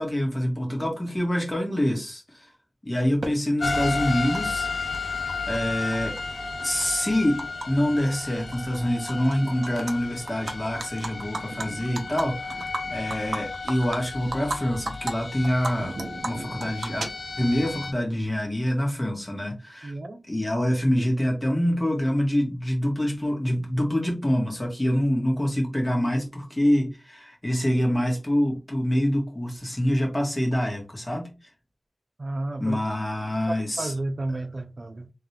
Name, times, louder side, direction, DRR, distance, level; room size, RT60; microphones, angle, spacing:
voice 1, 0.0-2.5 2.8-4.7 5.1-5.2 5.5-6.2 6.6-19.9 20.3-31.3 32.6-33.9, equal, 15° left, 1.8 m, -26 dB
Animal, 3.2-3.3 4.3-4.4 4.7-5.6 5.9-7.7 8.0-8.2 8.5-9.3 9.6-9.9 10.3-14.6 14.9-15.1 15.4-17.6, right 2 dB, 75° right, 0.8 m, -34 dB
sound 1, 3.6-17.9, left 3 dB, 80° left, 0.7 m, -33 dB
voice 2, 19.8-20.2 32.2-32.8 33.5-35.1, right 2 dB, 50° right, 0.4 m, -32 dB
3.6 x 2.9 x 3.3 m
wide cardioid pair, 80°, 0 cm